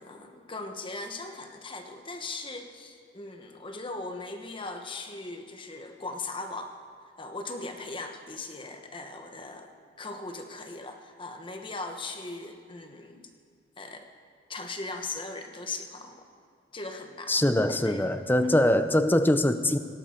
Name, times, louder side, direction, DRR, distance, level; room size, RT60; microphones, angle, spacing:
voice 1, 0.0-6.7 7.2-13.3 13.8-14.1 14.5-16.2 16.7-18.1, left 3 dB, 25° left, 5 dB, 1.2 m, -39 dB
voice 2, 17.3-19.8, left 1 dB, 10° left, 10 dB, 0.6 m, -23 dB
18.5 x 17.0 x 4.5 m, 2.2 s
head